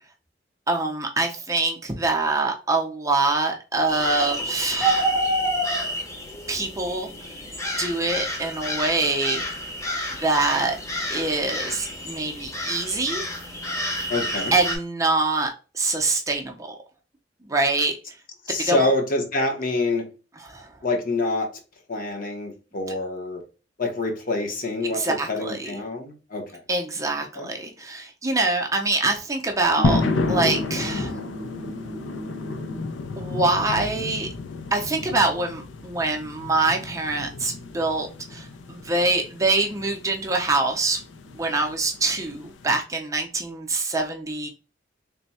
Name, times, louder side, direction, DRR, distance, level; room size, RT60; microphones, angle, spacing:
voice 1, 0.7-5.1 6.5-7.1 7.8-9.4 10.1-10.8 11.1-13.2 14.5-16.8 17.5-17.9 18.6-18.9 20.5-20.7 24.9-25.7 26.7-30.0 30.3-31.1 33.2-34.3 34.7-41.0 41.3-44.5, right 2 dB, 20° right, 0.5 m, -24 dB
sound 1, 3.9-14.8, equal, 15° left, 0.8 m, -29 dB
voice 2, 14.1-14.5 18.5-20.1 20.8-21.5 21.9-23.4 23.8-26.6 27.3-27.5, left 2 dB, 50° left, 0.8 m, -26 dB
sound 2, 29.8-42.8, left 3 dB, 85° left, 0.5 m, -31 dB
sound 3, 29.8-32.9, equal, 60° right, 0.7 m, -34 dB
3.4 x 2.1 x 4.1 m
head